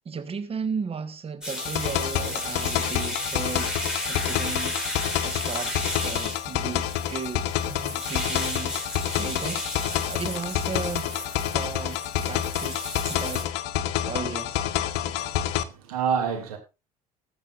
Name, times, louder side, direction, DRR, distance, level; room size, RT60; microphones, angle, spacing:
voice 1, 0.0-3.7 4.1-4.8 5.2-5.7 6.0-8.7 9.2-9.6 10.1-11.1 11.5-12.8 13.1-13.5 14.1-14.7, right 5 dB, 30° right, 1.4 m, -35 dB
sound 1, 1.4-13.4, left 1 dB, 5° right, 5.2 m, -34 dB
sound 2, 1.6-15.6, left 12 dB, 60° left, 0.8 m, -28 dB
voice 2, 15.1-16.6, right 7 dB, 75° right, 2.6 m, -29 dB
20.5 x 7.1 x 2.5 m
figure-of-eight pair, 60°, 19 cm